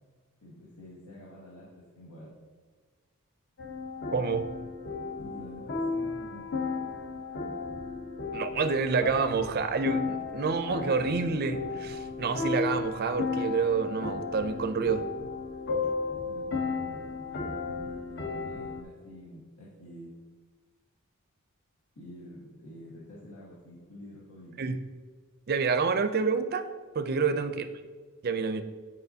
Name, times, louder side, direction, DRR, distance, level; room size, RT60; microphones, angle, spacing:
voice 1, 0.4-2.3 5.2-6.7 16.1-20.1 21.9-24.6 27.1-27.4, equal, 90° left, -8 dB, 1.5 m, -48 dB
sound 1, 3.6-18.8, left 4 dB, 50° left, 0.7 m, -34 dB
voice 2, 4.1-4.5 8.3-15.1 24.6-24.8 25.5-26.7 27.0-27.7 28.2-28.6, right 5 dB, 45° right, 9 dB, 0.4 m, -28 dB
8.9 x 4.7 x 2.7 m, 1.5 s
head